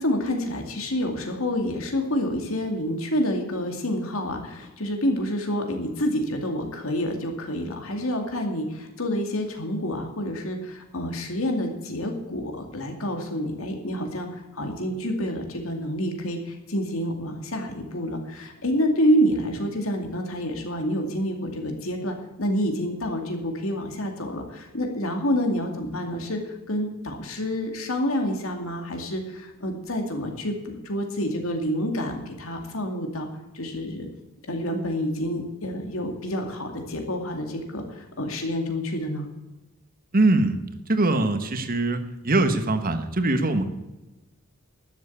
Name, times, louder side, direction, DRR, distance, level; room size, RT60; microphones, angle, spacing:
voice 1, 0.0-33.3 33.5-34.1 34.5-39.3, equal, 70° left, 4 dB, 2.4 m, -28 dB
voice 2, 40.1-40.6 40.9-43.7, right 2 dB, 45° right, 8 dB, 1.3 m, -22 dB
12.5 x 7.6 x 8.5 m, 1.0 s
head